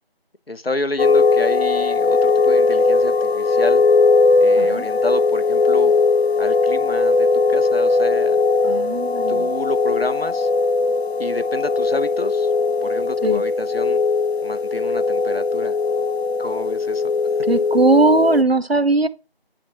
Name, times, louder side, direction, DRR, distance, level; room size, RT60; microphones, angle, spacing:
voice 1, 0.5-3.9 4.4-5.9 6.4-8.5 9.3-10.5 11.2-12.5 12.8-14.0 14.4-15.8 16.4-17.1, left 2 dB, 70° left, 1.1 m, -29 dB
sound 1, 1.0-18.4, left 3 dB, 85° left, 0.6 m, -19 dB
voice 2, 4.6-4.9 8.6-9.5 13.2-13.4 17.4-19.1, right 2 dB, 75° right, 1.1 m, -18 dB
10.5 x 3.8 x 5.9 m
figure-of-eight pair, 175°, 31 cm